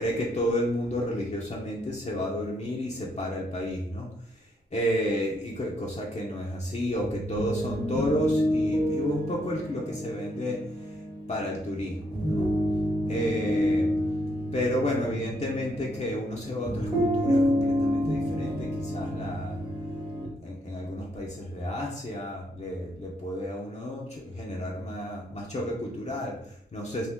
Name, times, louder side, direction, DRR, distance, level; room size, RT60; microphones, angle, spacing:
voice 1, 0.0-4.1 4.7-10.6 11.3-12.5 13.1-13.9 14.5-19.6 20.2-27.1, equal, 40° left, -3 dB, 0.7 m, -31 dB
sound 1, 6.9-20.3, equal, 25° right, 0.9 m, -29 dB
2.7 x 2.6 x 3.5 m, 0.67 s
wide cardioid pair, 90°, 17 cm